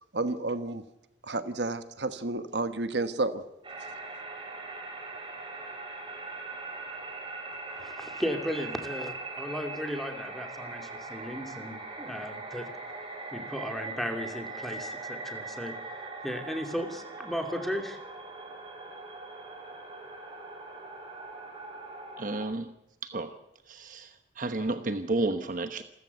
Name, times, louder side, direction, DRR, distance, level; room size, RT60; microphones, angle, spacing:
voice 1, 0.1-0.8 1.2-3.4, right 2 dB, 70° right, 10 dB, 1.3 m, -31 dB
sound 1, 3.6-22.5, right 3 dB, 30° right, 5.0 m, -41 dB
voice 2, 7.8-12.7 13.3-18.0, equal, ahead, 4 dB, 2.6 m, -35 dB
voice 3, 22.2-22.7 23.0-23.4 23.7-25.8, right 2 dB, 45° right, 9 dB, 1.1 m, -32 dB
27.5 x 14.5 x 8.2 m, 0.85 s
head